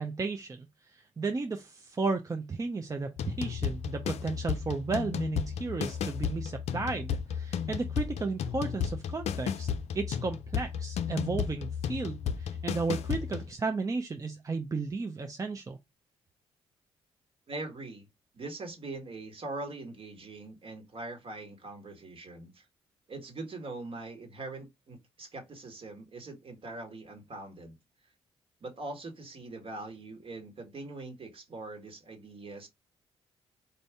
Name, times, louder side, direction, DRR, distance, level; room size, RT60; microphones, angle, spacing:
voice 1, 0.0-9.7 9.9-15.8, right 4 dB, 30° right, 0.6 m, -34 dB
sound 1, 3.2-13.5, left 7 dB, 70° left, 0.5 m, -34 dB
voice 2, 17.5-18.1 18.3-22.6 23.1-27.8 28.6-32.7, right 2 dB, 55° right, 1.8 m, -42 dB
4.4 x 2.6 x 3.5 m
supercardioid pair, 55°, 11 cm